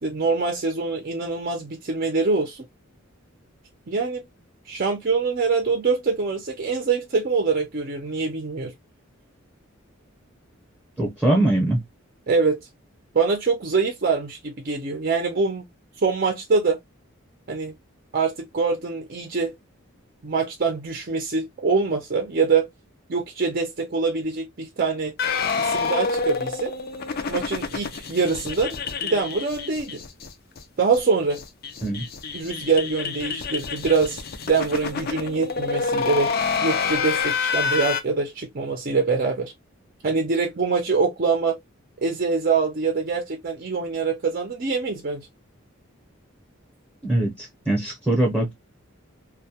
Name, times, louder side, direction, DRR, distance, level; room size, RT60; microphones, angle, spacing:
voice 1, 0.0-2.6 3.9-4.2 4.7-8.7 12.3-12.6 13.1-15.6 16.0-16.8 17.5-17.8 18.1-19.5 20.2-22.7 23.1-25.1 25.6-26.7 27.3-28.8 29.0-30.0 30.8-31.4 32.3-34.2 34.5-36.3 36.6-39.5 40.0-41.6 42.0-45.3, right 4 dB, 45° right, 0.5 m, -24 dB
voice 2, 11.0-11.8 31.8-32.0 47.0-48.5, right 1 dB, 10° right, 0.7 m, -22 dB
sound 1, 25.2-30.3 30.6-30.7 30.9-31.0 31.3-38.0, left 5 dB, 45° left, 0.4 m, -27 dB
2.2 x 2.2 x 2.7 m
head